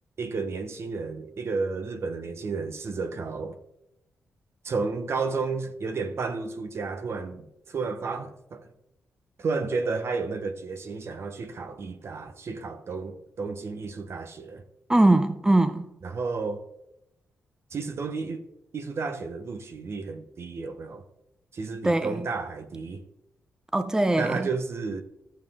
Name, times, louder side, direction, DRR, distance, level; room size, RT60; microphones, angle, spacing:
voice 1, 0.2-3.6 4.6-8.7 9.4-14.6 16.0-16.6 17.7-18.4 18.7-21.0 21.5-23.0 24.2-25.0, right 4 dB, 55° right, 1.1 m, -32 dB
voice 2, 14.9-15.9 21.8-22.3 23.7-24.5, right 2 dB, 10° right, 0.6 m, -21 dB
12.5 x 7.5 x 3.7 m
cardioid pair, 70°, 5 cm